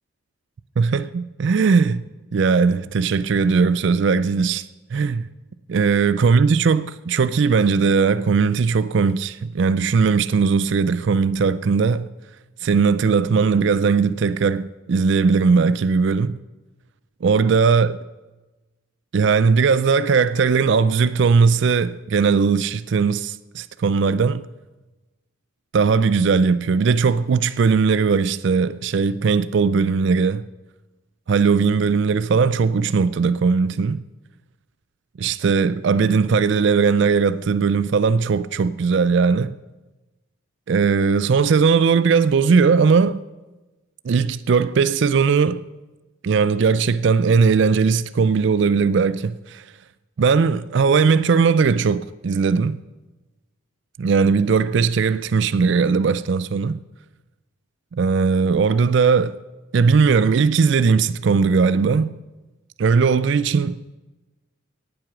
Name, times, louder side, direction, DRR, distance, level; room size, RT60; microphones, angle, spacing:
voice 1, 0.8-2.0 2.3-4.6 4.9-5.3 5.7-12.1 12.6-16.4 17.2-17.9 19.1-24.5 25.7-30.5 31.3-34.0 35.2-39.5 40.7-43.2 44.0-45.6 46.2-49.6 50.2-52.8 54.0-56.8 57.9-59.4 59.7-62.1 62.8-63.8, right 5 dB, 55° right, 0.4 m, -18 dB
18.0 x 7.8 x 6.0 m
head